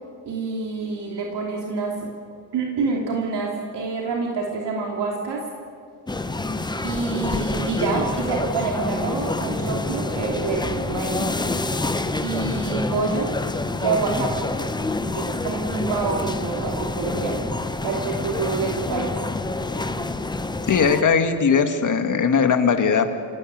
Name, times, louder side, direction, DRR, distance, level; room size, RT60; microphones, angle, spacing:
voice 1, 0.2-2.1 2.5-5.4 6.8-11.3 12.2-13.3 13.8-14.5 15.1-17.5 17.8-19.1, right 4 dB, 60° right, 0 dB, 3.1 m, -27 dB
sound 1, 6.1-21.0, left 2 dB, 10° left, 0.9 m, -27 dB
voice 2, 20.7-23.1, left 6 dB, 40° left, 6 dB, 2.1 m, -19 dB
28.5 x 17.5 x 9.3 m, 2.3 s
cardioid pair, 145°, 46 cm